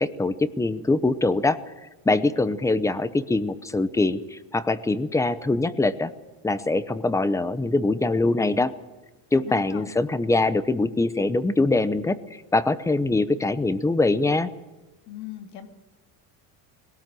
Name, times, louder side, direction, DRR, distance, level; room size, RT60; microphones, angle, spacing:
voice 1, 0.0-1.6 2.0-6.1 6.4-8.7 9.3-14.5, left 2 dB, 10° left, 14 dB, 0.7 m, -23 dB
voice 2, 9.3-9.9 15.1-15.7, left 11 dB, 90° left, 6 dB, 2.8 m, -38 dB
21.0 x 18.0 x 7.7 m, 1.1 s
cardioid pair, 155°, 40 cm